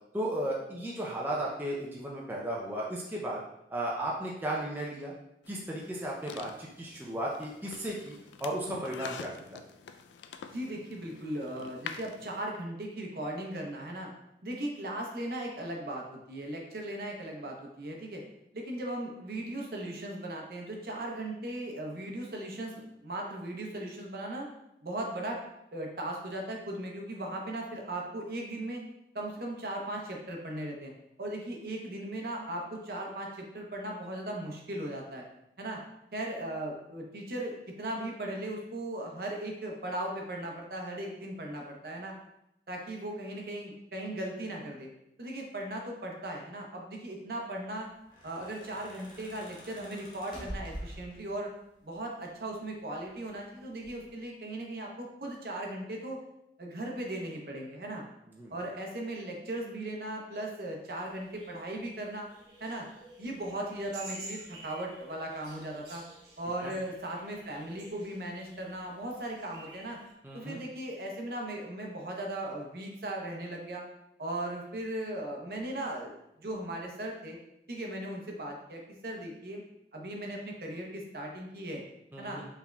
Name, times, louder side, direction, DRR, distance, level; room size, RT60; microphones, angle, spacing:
voice 1, 0.1-3.4 3.7-5.1 5.5-9.6 58.4-58.5 66.6-66.7 70.2-70.6 82.1-82.4, right 1 dB, 10° right, -4 dB, 0.4 m, -35 dB
sound 1, 5.4-12.4, left 6 dB, 85° left, 0.3 m, -46 dB
voice 2, 10.5-14.1 14.4-18.2 18.5-24.5 24.8-25.4 25.7-28.8 29.1-30.9 31.2-35.2 35.6-35.8 36.1-42.1 42.7-44.9 45.2-47.9 48.2-51.5 51.8-56.2 56.6-58.0 58.5-62.3 62.6-62.9 63.2-66.0 66.4-70.0 70.3-73.8 74.2-76.1 76.4-77.4 77.7-79.6 79.9-81.8 82.2-82.4, right 1 dB, 55° right, 0 dB, 0.7 m, -38 dB
sound 2, 47.9-51.5 52.6-53.4 53.8-54.1, equal, 25° left, 0.8 m, -45 dB
sound 3, 60.9-70.1, right 2 dB, 75° right, 1.1 m, -51 dB
4.7 x 3.4 x 2.2 m, 0.84 s
head